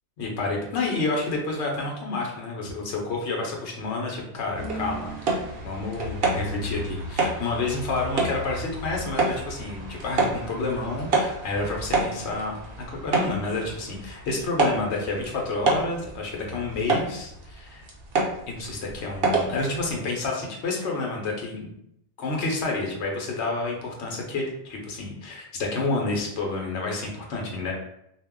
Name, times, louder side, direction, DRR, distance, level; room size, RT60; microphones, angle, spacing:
voice 1, 0.2-17.8 18.5-21.6 22.2-27.7, left 3 dB, 80° left, 0 dB, 1.0 m, -29 dB
sound 1, 4.5-19.9, right 3 dB, 65° right, 0.8 m, -29 dB
2.4 x 2.1 x 3.5 m, 0.77 s
omnidirectional pair, 1.1 m